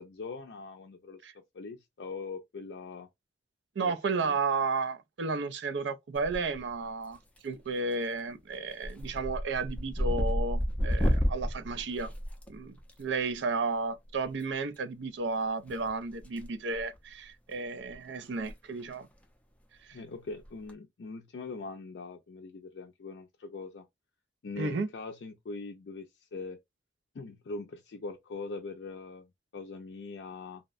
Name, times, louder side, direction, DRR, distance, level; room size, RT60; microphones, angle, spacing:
voice 1, 0.0-3.1 3.8-4.4 19.9-23.9 24.4-26.6 27.1-30.6, left 3 dB, 70° left, 0.4 m, -42 dB
voice 2, 3.8-7.2 7.4-12.1 12.5-19.1 19.9-20.0 24.6-24.9, right 4 dB, 80° right, 0.5 m, -33 dB
sound 1, 6.1-6.7 7.0-7.5 7.9-8.2 8.5-12.9 14.3-14.4 15.7-16.5 16.7-17.0 17.5-17.6 17.8-17.9 18.3-18.5 18.8-18.9 20.4-20.7, equal, 5° left, 0.4 m, -31 dB
2.7 x 2.1 x 2.4 m
head